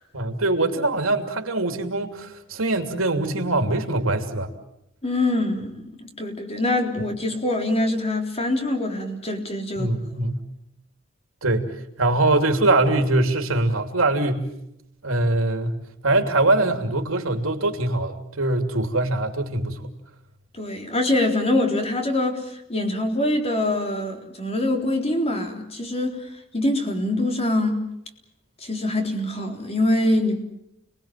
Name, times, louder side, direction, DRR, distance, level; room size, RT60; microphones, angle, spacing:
voice 1, 0.1-4.5 9.8-10.4 11.4-11.7 12.0-14.5 15.0-15.8 16.0-19.9, right 2 dB, 80° right, 5 dB, 3.0 m, -22 dB
voice 2, 5.0-9.9 20.5-26.2 26.5-27.8 28.6-30.4, left 1 dB, 30° left, 3 dB, 3.9 m, -24 dB
29.5 x 21.0 x 7.5 m, 0.82 s
head